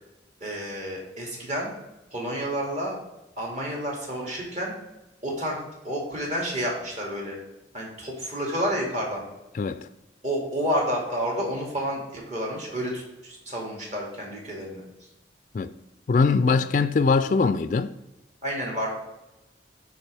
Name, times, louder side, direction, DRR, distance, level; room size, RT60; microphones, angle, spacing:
voice 1, 0.4-1.7 2.1-3.0 3.4-4.7 5.2-5.6 5.8-7.4 7.7-9.2 10.2-14.8 18.4-18.9, equal, 40° right, 2.3 m, -30 dB
voice 2, 9.5-9.9 15.5-15.7 16.1-17.9, left 4 dB, 45° left, 0.3 m, -22 dB
11.5 x 4.8 x 3.4 m
head